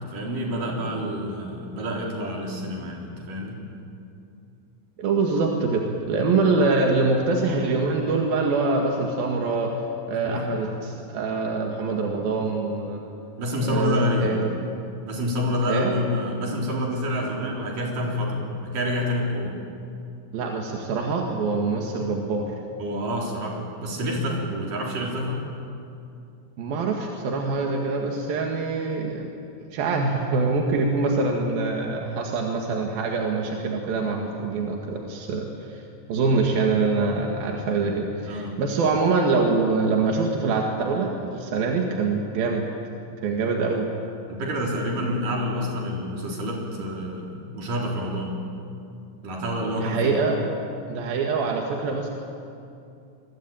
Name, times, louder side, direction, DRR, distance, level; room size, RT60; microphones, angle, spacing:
voice 1, 0.0-3.6 10.2-10.6 13.4-14.3 15.1-19.6 22.8-25.4 38.3-38.6 44.3-48.3 49.2-50.2, left 1 dB, 65° right, -1 dB, 5.6 m, -28 dB
voice 2, 5.0-13.0 13.6-14.5 15.6-15.9 20.3-22.5 24.5-24.7 26.6-29.3 29.6-35.8 36.1-42.6 43.2-43.9 49.8-50.4 50.9-52.1, right 3 dB, 90° right, 1 dB, 3.7 m, -24 dB
27.5 x 21.5 x 8.9 m, 2.6 s
omnidirectional pair, 4.1 m